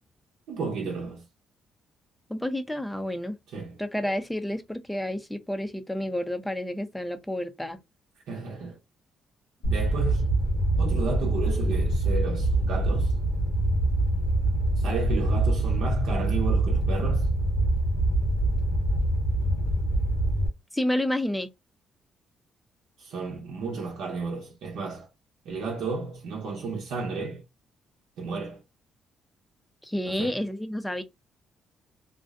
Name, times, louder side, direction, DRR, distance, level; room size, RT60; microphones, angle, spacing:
voice 1, 0.5-1.2 3.5-3.8 8.3-8.8 9.6-10.3 10.8-13.1 14.8-17.3 23.0-25.1 25.4-27.4 28.2-28.6 30.1-30.4, right 4 dB, 80° right, 0.7 m, -33 dB
voice 2, 2.3-3.4 3.8-7.8 20.7-21.5 29.8-31.0, left 1 dB, 5° left, 0.4 m, -30 dB
Fire, 9.6-20.5, right 1 dB, 85° left, 0.9 m, -24 dB
2.5 x 2.1 x 2.3 m
cardioid pair, 90°, 0 cm